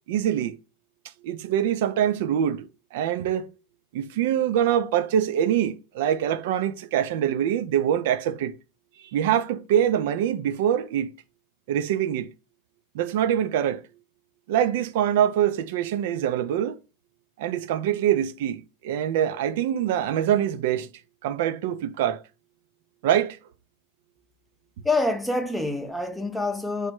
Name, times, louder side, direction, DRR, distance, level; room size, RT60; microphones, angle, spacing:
voice 1, 0.1-0.6 1.2-3.5 3.9-8.5 9.1-11.1 11.7-12.3 12.9-13.8 14.5-16.8 17.4-20.9 21.2-22.2 23.0-23.4, right 10 dB, 65° right, 0.5 m, -24 dB
voice 2, 24.8-26.9, left 2 dB, 5° left, 0.6 m, -26 dB
4.7 x 2.2 x 4.4 m
hypercardioid pair, 90°, 0 cm